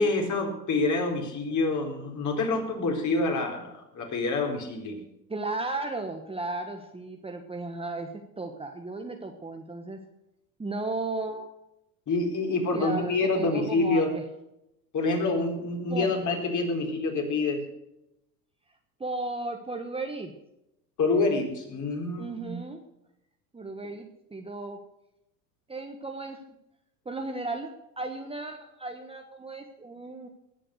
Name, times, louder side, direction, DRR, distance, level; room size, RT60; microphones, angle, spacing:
voice 1, 0.0-5.0 12.1-14.1 14.9-17.7 21.0-22.5, left 3 dB, 35° left, 2 dB, 4.2 m, -27 dB
voice 2, 5.3-10.0 10.6-11.5 12.7-14.2 15.9-16.1 19.0-20.3 22.2-22.8 23.5-24.8 25.7-26.4 27.0-30.3, right 2 dB, 10° right, 4 dB, 1.4 m, -35 dB
19.0 x 7.7 x 6.5 m, 0.87 s
hypercardioid pair, 90°, 50 cm